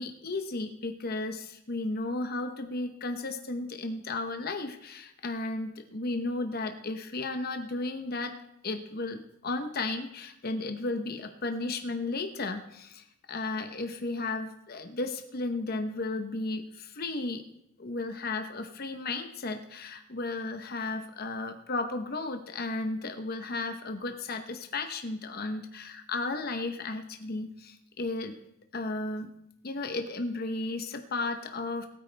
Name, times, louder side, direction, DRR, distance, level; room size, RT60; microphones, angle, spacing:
voice 1, 0.0-8.3 8.6-17.4 17.8-28.3 28.7-29.3 29.6-31.9, left 2 dB, 50° left, 6 dB, 0.9 m, -34 dB
19.5 x 9.1 x 3.4 m, 0.79 s
head